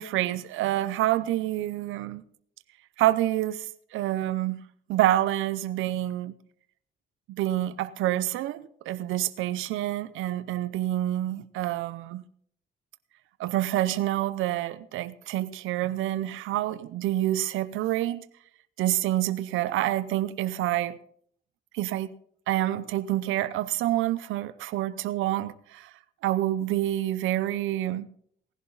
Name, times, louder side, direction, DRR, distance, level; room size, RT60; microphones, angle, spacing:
voice 1, 0.0-2.2 3.0-3.7 3.9-4.6 4.9-6.3 7.3-12.2 13.4-18.2 18.8-21.0 21.7-22.1 22.5-25.9 26.2-28.1, right 14 dB, 90° right, 0.7 m, -27 dB
18.5 x 11.0 x 4.0 m
cardioid pair, 90°, 20 cm